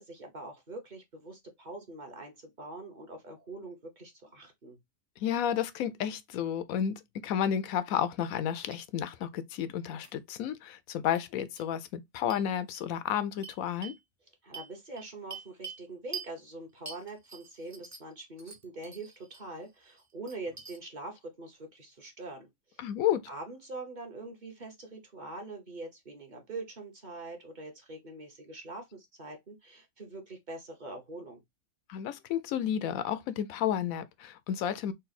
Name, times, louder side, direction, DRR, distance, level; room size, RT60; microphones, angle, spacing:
voice 1, 0.0-4.8 14.4-22.8 23.3-31.4, right 2 dB, 40° right, 1.1 m, -44 dB
voice 2, 5.2-13.9 22.8-23.2 31.9-34.9, left 9 dB, 90° left, 1.0 m, -31 dB
sound 1, 8.2-8.4 8.7-8.8 10.0-10.1 11.1-11.2 11.6-11.7 12.3-12.4 12.7-12.8 13.4-14.0 14.5-15.8 16.1-16.3 16.9-18.1 18.4-19.4 19.8-20.8, right 5 dB, 20° right, 0.5 m, -45 dB
4.0 x 2.3 x 4.0 m
omnidirectional pair, 1.4 m